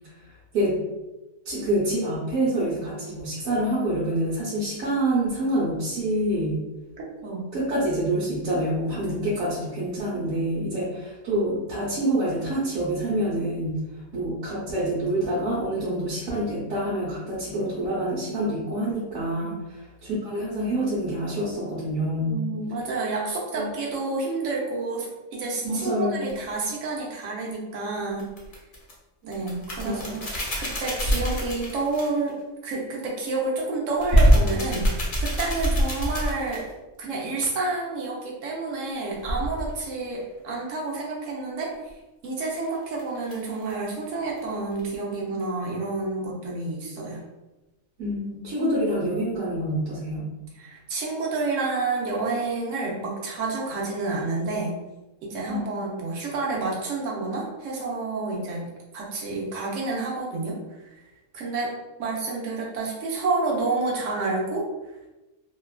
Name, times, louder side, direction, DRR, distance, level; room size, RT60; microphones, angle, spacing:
voice 1, 1.4-6.6 7.5-13.8 14.1-22.4 23.5-23.7 25.6-26.2 29.8-30.2 48.0-50.3 55.5-55.8, right 1 dB, 90° right, -9 dB, 1.2 m, -27 dB
voice 2, 7.2-7.5 19.4-19.6 22.2-28.3 29.2-32.3 32.6-36.7 37.0-41.9 42.2-47.2 50.6-54.8 55.2-58.7 58.9-61.0 61.3-61.7 62.0-64.7, right 3 dB, 70° right, -3 dB, 1.0 m, -29 dB
sound 1, 26.3-26.4 28.2-28.9 29.3-32.3 34.0-36.7 39.2-39.8 42.2-43.9 44.3-44.4 44.7-44.9, equal, 45° left, 0.7 m, -24 dB
2.8 x 2.2 x 2.3 m, 1.1 s
omnidirectional pair, 1.4 m